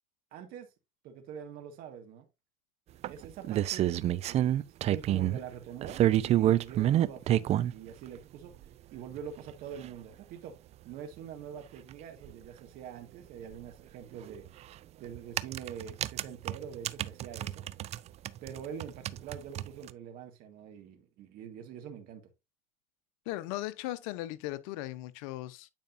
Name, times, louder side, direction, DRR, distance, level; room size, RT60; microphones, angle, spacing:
voice 1, 0.3-0.7 1.0-2.3 3.1-4.5 4.9-8.5 8.9-10.5 10.9-14.5 15.0-17.7 18.4-22.2, right 8 dB, 55° right, 1.8 m, -44 dB
sound 1, 3.0-5.4 5.8-7.7 8.6-8.7 9.2-9.3 9.5-9.6 9.8-9.9 11.9-12.0 12.2-12.3 14.3-14.5 15.2-18.0 18.3-19.9, right 12 dB, 40° right, 0.4 m, -28 dB
voice 2, 23.3-25.7, left 16 dB, 75° left, 0.8 m, -37 dB
9.0 x 5.2 x 2.6 m
supercardioid pair, 110°, 17 cm